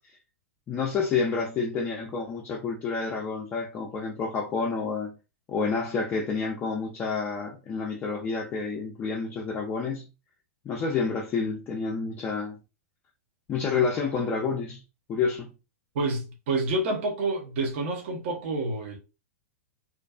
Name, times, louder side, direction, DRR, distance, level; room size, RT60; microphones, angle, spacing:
voice 1, 0.7-5.1 5.5-10.0 10.6-12.6 13.5-14.8 15.1-15.5, left 5 dB, 25° left, 0.4 m, -29 dB
voice 2, 15.9-19.0, right 2 dB, 50° right, 0.6 m, -28 dB
2.5 x 2.2 x 2.3 m
figure-of-eight pair, 100°, 8 cm